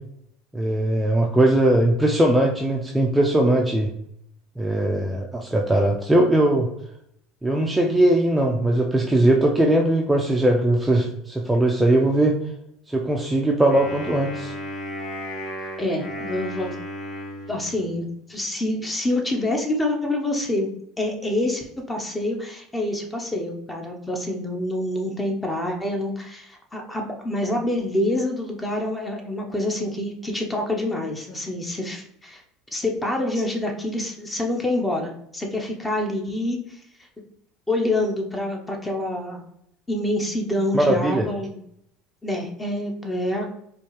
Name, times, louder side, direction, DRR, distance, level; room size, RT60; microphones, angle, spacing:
voice 1, 0.5-3.9 4.6-6.7 7.4-12.4 12.9-14.5 40.7-41.2, right 1 dB, 5° right, 0 dB, 0.5 m, -20 dB
Wind instrument woodwind instrument, 13.7-18.1, left 1 dB, 45° left, 1.1 m, -34 dB
voice 2, 15.8-16.8 17.5-20.7 21.0-32.4 32.7-36.8 37.7-39.4 39.9-41.6 42.2-43.5, left 1 dB, 15° left, 2 dB, 0.8 m, -26 dB
4.3 x 2.4 x 3.1 m, 0.75 s
hypercardioid pair, 85°, 0 cm